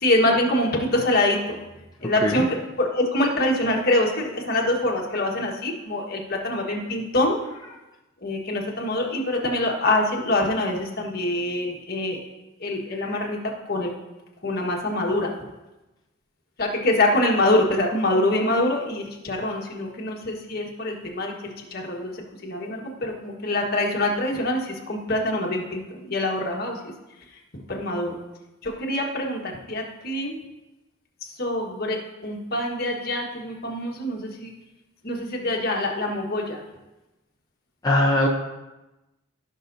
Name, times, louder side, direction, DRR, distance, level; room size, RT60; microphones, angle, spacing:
voice 1, 0.0-1.6 2.0-2.4 2.8-7.4 8.2-12.2 12.6-13.4 13.6-13.9 14.4-15.3 16.6-22.2 22.4-25.8 26.1-26.7 27.7-28.2 28.6-30.4 31.4-34.5 35.0-36.6, left 1 dB, 50° left, 0 dB, 1.5 m, -25 dB
voice 2, 37.8-38.3, left 1 dB, 20° left, -2 dB, 0.6 m, -21 dB
16.5 x 5.7 x 2.7 m, 1.0 s
head